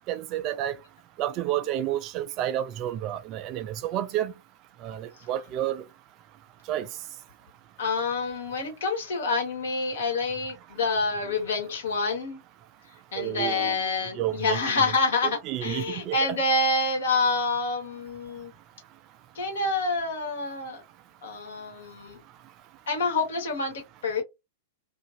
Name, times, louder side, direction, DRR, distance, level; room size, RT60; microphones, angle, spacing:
voice 1, 0.1-0.7 1.2-4.3 4.8-5.8 6.7-6.9 13.2-13.8 14.2-14.8 15.2-16.2, right 12 dB, 40° right, 0.4 m, -30 dB
voice 2, 7.8-12.4 13.1-18.5 19.3-20.8 21.2-22.2 22.9-24.2, left 3 dB, 70° left, 1.2 m, -27 dB
2.5 x 2.5 x 2.4 m
figure-of-eight pair, 100°, 0 cm